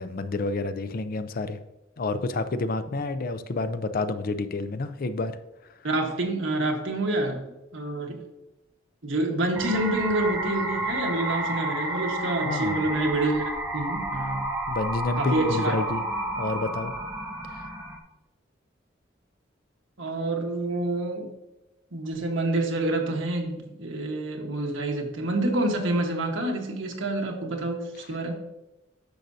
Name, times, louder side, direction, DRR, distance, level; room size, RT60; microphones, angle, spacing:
voice 1, 0.0-1.6 2.0-5.3 12.4-12.8 14.7-16.0 16.4-16.9 17.5-17.7, left 3 dB, 50° left, 11 dB, 0.5 m, -29 dB
voice 2, 5.8-7.4 7.7-8.2 9.0-13.4 13.7-14.5 15.2-15.8 20.0-21.3 21.9-28.3, right 2 dB, 80° right, 2 dB, 1.3 m, -27 dB
sound 1, 9.5-18.0, right 2 dB, 10° right, 1.1 m, -31 dB
10.5 x 6.4 x 2.7 m, 0.96 s
head